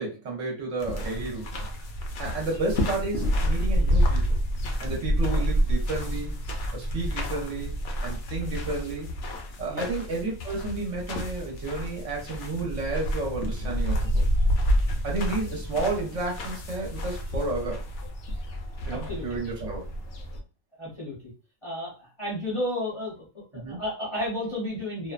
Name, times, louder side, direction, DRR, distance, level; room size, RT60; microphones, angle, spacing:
voice 1, 0.0-1.6 2.2-4.3 4.8-6.3 6.7-7.7 8.0-9.1 9.6-14.3 15.0-17.8 18.9-19.8 23.5-23.8, right 3 dB, 65° right, -1 dB, 1.0 m, -31 dB
sound 1, 0.8-20.4, equal, 65° left, 0.8 m, -28 dB
voice 2, 18.9-19.3 20.8-21.2 21.6-25.1, left 1 dB, 30° left, -7 dB, 0.7 m, -32 dB
2.6 x 2.1 x 2.4 m, 0.35 s
omnidirectional pair, 1.4 m